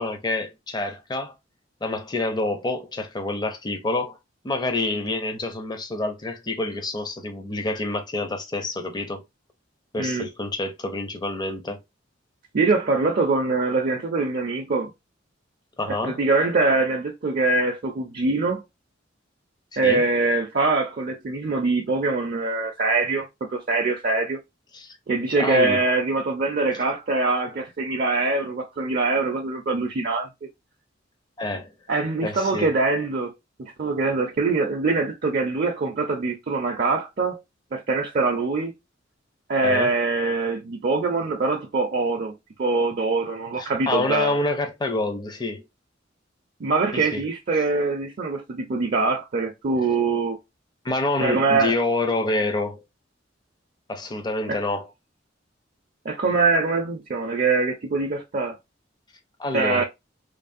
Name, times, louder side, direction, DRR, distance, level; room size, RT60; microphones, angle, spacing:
voice 1, 0.0-1.3 1.8-4.2 4.4-9.2 9.9-11.8 15.8-16.2 19.8-20.1 24.7-25.0 25.4-25.8 31.4-31.7 32.2-32.7 39.6-40.0 43.6-45.6 46.9-47.2 50.8-52.8 53.9-54.9 59.4-59.8, left 2 dB, 20° left, 0.5 m, -27 dB
voice 2, 10.0-10.3 12.5-14.9 15.9-18.6 19.8-24.4 25.1-30.3 31.9-33.3 33.6-37.4 37.7-38.7 39.5-44.3 46.6-50.4 51.2-51.7 54.5-54.6 56.0-58.6 59.5-59.8, right 3 dB, 50° right, 0.5 m, -23 dB
3.2 x 2.0 x 2.4 m
head